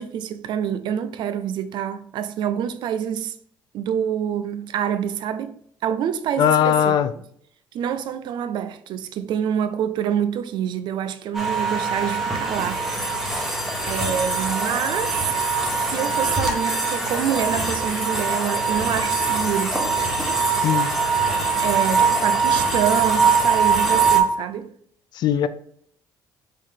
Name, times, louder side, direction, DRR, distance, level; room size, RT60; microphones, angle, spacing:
voice 1, 0.0-3.4 3.7-5.5 5.8-6.9 7.7-12.9 13.8-15.5 15.9-19.8 21.6-24.7, right 9 dB, 65° right, 0.5 m, -26 dB
voice 2, 6.4-7.1 20.6-20.9 25.1-25.5, left 9 dB, 60° left, 0.4 m, -19 dB
sound 1, 11.3-24.2, right 4 dB, 5° right, 1.1 m, -22 dB
5.2 x 2.7 x 3.5 m
cardioid pair, 95°, 8 cm